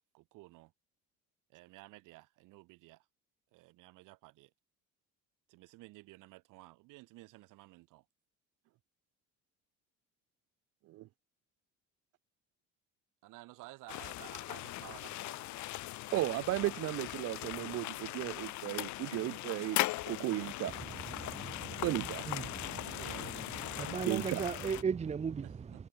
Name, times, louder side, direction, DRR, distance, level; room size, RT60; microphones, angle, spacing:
voice 1, 0.1-0.7 1.5-3.1 3.5-4.5 5.5-8.1 13.2-15.7 22.8-23.5 25.4-25.5, right 21 dB, 85° right, 5.6 m, -54 dB
sound 1, 13.9-24.8, left 17 dB, 65° left, 2.2 m, -39 dB
voice 2, 16.1-20.7 21.8-22.2 24.1-24.4, right 17 dB, 50° right, 0.5 m, -35 dB
voice 3, 20.7-25.9, right 6 dB, 20° right, 0.9 m, -38 dB
cardioid pair, 145°, 31 cm